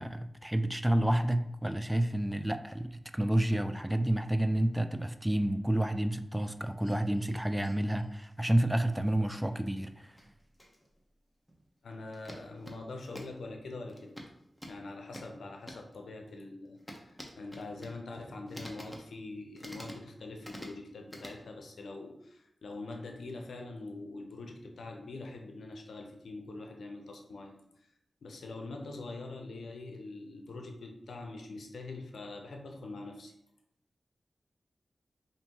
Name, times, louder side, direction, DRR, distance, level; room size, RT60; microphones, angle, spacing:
voice 1, 0.0-10.1, right 1 dB, 10° right, 10 dB, 0.3 m, -30 dB
sound 1, 6.3-8.3 8.9-11.0 11.5-11.7 12.1-13.4 13.9-15.9 16.8-18.0 18.5-19.1 19.5-20.8 21.1-21.3, equal, 5° left, 0.9 m, -49 dB
voice 2, 11.8-14.2 14.7-27.6 28.2-33.3, left 2 dB, 85° left, 3 dB, 0.6 m, -44 dB
5.1 x 2.7 x 2.9 m, 0.78 s
cardioid pair, 45°, 0 cm